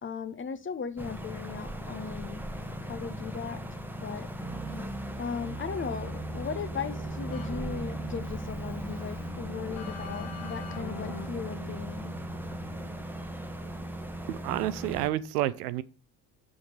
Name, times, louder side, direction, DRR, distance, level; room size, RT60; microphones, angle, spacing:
voice 1, 0.0-2.4 2.8-3.6 4.0-4.3 5.2-12.1, left 6 dB, 25° left, 0.9 m, -37 dB
sound 1, 1.0-15.1, right 1 dB, 5° right, 1.1 m, -37 dB
Keyboard (musical), 5.9-13.2, left 5 dB, 45° left, 1.6 m, -44 dB
voice 2, 14.3-15.8, right 14 dB, 65° right, 0.6 m, -30 dB
6.3 x 5.8 x 6.5 m
figure-of-eight pair, 50°, 50 cm